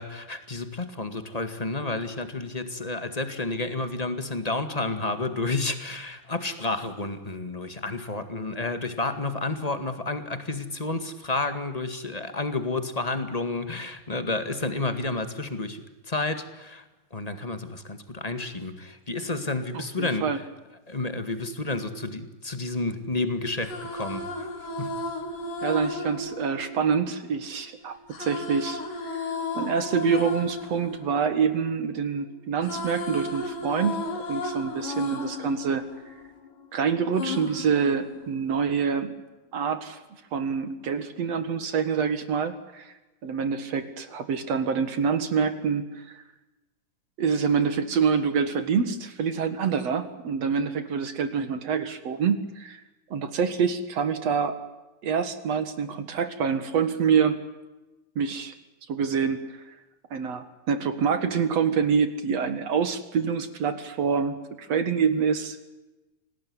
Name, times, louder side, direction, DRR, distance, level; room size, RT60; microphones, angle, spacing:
voice 1, 0.0-16.8 17.1-20.3 20.9-24.4 24.8-24.9, left 2 dB, 20° left, 9 dB, 1.2 m, -30 dB
voice 2, 19.7-20.4 25.6-29.2 29.5-36.1 36.7-39.1 39.5-40.0 40.3-42.9 43.2-46.2 47.2-52.8 53.1-54.6 55.0-57.4 58.2-58.6 58.9-59.4 59.7-59.8 60.1-65.7, right 6 dB, 55° right, 11 dB, 2.5 m, -26 dB
sound 1, 23.6-27.5 28.1-32.1 32.4-36.7 37.2-38.6, left 2 dB, 75° left, 5.3 m, -34 dB
27.0 x 19.0 x 9.7 m, 1.1 s
omnidirectional pair, 4.0 m